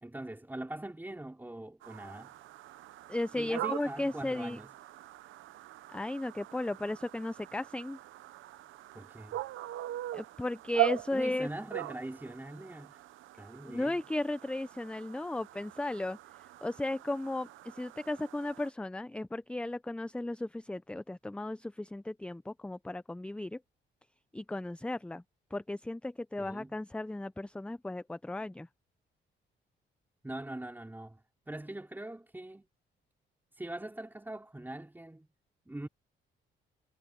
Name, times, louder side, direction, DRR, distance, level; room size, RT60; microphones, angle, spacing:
voice 1, 0.0-2.4 3.3-4.7 8.9-9.4 11.1-13.0 13.4-14.0 26.4-26.8 30.2-31.2 31.5-32.7 33.5-35.3 35.7-35.9, right 1 dB, 10° right, 3.9 m, -42 dB
sound 1, 1.8-18.7, right 15 dB, 80° right, 0.9 m, -41 dB
voice 2, 3.1-4.6 5.9-8.0 10.1-11.5 13.6-16.2 16.6-23.6 24.3-25.2 25.5-28.7, left 2 dB, 5° left, 0.5 m, -35 dB
cardioid pair, 90°, 20 cm